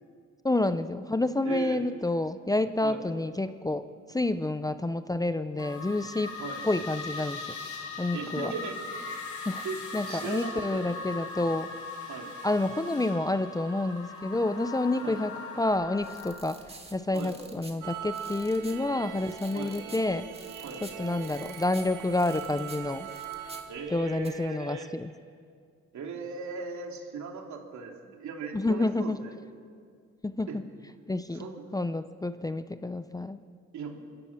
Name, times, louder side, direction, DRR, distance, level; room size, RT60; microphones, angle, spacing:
voice 1, 0.4-3.8 4.1-6.4 6.6-7.4 8.0-8.5 9.5-11.7 12.4-16.6 16.9-20.3 20.8-23.1 23.9-25.1 28.5-29.2 30.2-30.7 31.1-33.4, left 2 dB, 10° left, 11 dB, 0.7 m, -29 dB
voice 2, 1.4-1.8 2.8-3.0 6.4-6.6 8.1-8.8 9.6-10.9 11.4-11.5 12.1-12.3 15.0-15.2 17.1-17.4 19.5-19.8 20.6-20.8 23.7-24.9 25.9-29.4 30.5-30.6 31.3-31.6 33.7-34.0, right 5 dB, 70° right, 2 dB, 3.0 m, -38 dB
sound 1, 5.6-16.3, left 4 dB, 75° left, 3.8 m, -39 dB
sound 2, 15.6-24.3, right 2 dB, 20° right, 2.5 m, -51 dB
sound 3, 17.8-23.6, right 9 dB, 90° right, 1.7 m, -41 dB
25.5 x 15.0 x 7.3 m, 2.1 s
cardioid pair, 90°, 30 cm